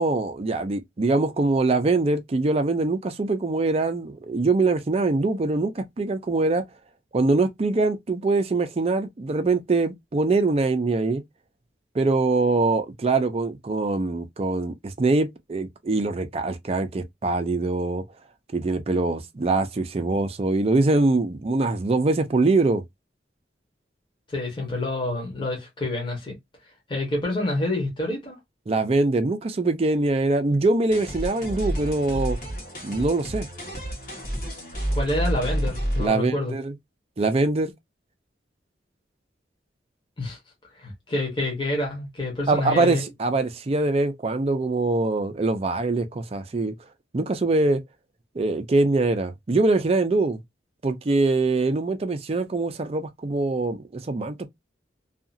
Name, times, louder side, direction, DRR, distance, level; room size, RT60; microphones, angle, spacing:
voice 1, 0.0-6.7 7.1-11.2 11.9-18.1 18.5-22.8 28.7-32.4 32.8-33.5 36.0-36.7 37.2-37.7 42.5-46.7 47.1-47.8 48.4-50.4 50.8-54.5, right 3 dB, 35° right, 0.4 m, -23 dB
voice 2, 24.3-26.4 26.9-28.4 34.9-36.5 40.2-40.4 40.8-43.0, left 2 dB, 25° left, 1.1 m, -28 dB
sound 1, 30.9-36.1, equal, 50° left, 1.3 m, -29 dB
2.8 x 2.4 x 2.5 m
head